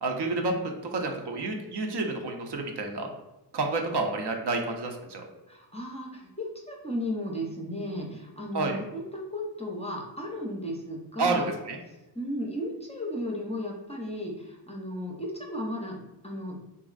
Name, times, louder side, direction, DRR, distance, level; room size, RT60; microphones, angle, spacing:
voice 1, 0.0-0.5 0.9-3.1 3.5-5.2 8.5-8.8 11.2-11.8, right 3 dB, 60° right, 3 dB, 0.6 m, -29 dB
voice 2, 5.5-11.5 12.1-16.0 16.2-16.6, equal, 15° left, -1 dB, 0.5 m, -35 dB
2.9 x 2.5 x 2.4 m, 1.0 s
cardioid pair, 70°, 46 cm